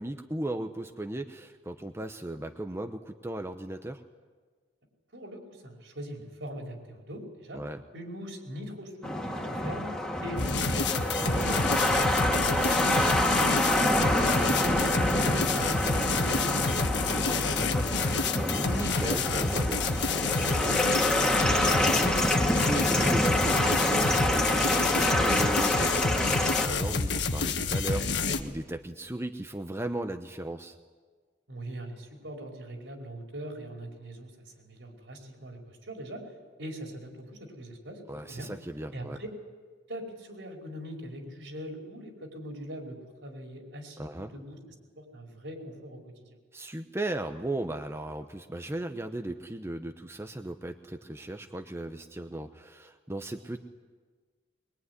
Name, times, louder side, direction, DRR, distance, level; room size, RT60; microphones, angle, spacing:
voice 1, 0.0-4.0 7.5-7.8 11.3-11.7 18.5-30.8 38.1-39.2 44.0-44.3 46.5-53.6, right 1 dB, 15° right, 6 dB, 0.9 m, -36 dB
voice 2, 5.1-7.6 7.9-9.9 10.2-11.5 12.3-15.0 15.3-17.9 31.5-34.3 34.6-36.2 36.6-38.0 38.3-38.5 38.9-39.3 39.9-44.6 45.0-46.4, equal, 70° right, 1 dB, 5.3 m, -41 dB
sound 1, 9.0-26.7, left 1 dB, 5° left, 2.1 m, -27 dB
sound 2, 10.4-28.4, left 4 dB, 65° left, 1.6 m, -29 dB
22.5 x 22.5 x 9.8 m, 1.5 s
head